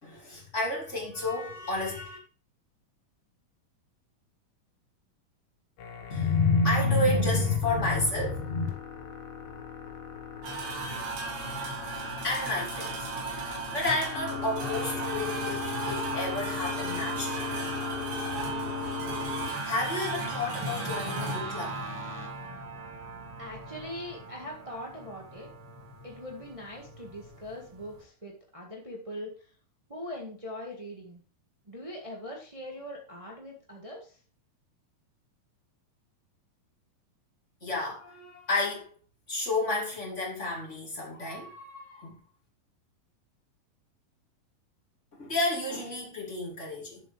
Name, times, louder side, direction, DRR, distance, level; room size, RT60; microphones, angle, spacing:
voice 1, 0.0-2.2 6.1-8.7 11.4-11.6 12.2-13.0 13.7-17.5 19.6-21.8 37.6-38.9 39.3-42.2 45.2-47.0, left 2 dB, 20° left, 2.9 m, -30 dB
sound 1, 5.8-22.3, left 6 dB, 75° left, 3.0 m, -39 dB
sound 2, 10.4-28.0, right 3 dB, 75° right, 4.2 m, -37 dB
voice 2, 23.4-25.5 26.0-29.5 29.9-31.2 31.7-34.2, left 1 dB, 25° right, 0.6 m, -41 dB
10.5 x 7.5 x 3.4 m
omnidirectional pair, 4.1 m